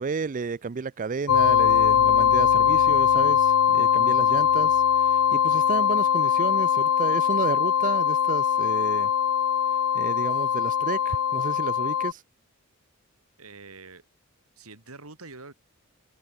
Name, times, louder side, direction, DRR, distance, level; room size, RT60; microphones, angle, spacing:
voice 1, 0.0-9.1 9.9-12.2, right 4 dB, 40° right, 0.4 m, -32 dB
sound 1, 1.3-12.1, left 8 dB, 80° left, 0.5 m, -21 dB
voice 2, 13.4-14.0 14.6-15.5, right 3 dB, 85° right, 3.3 m, -45 dB
head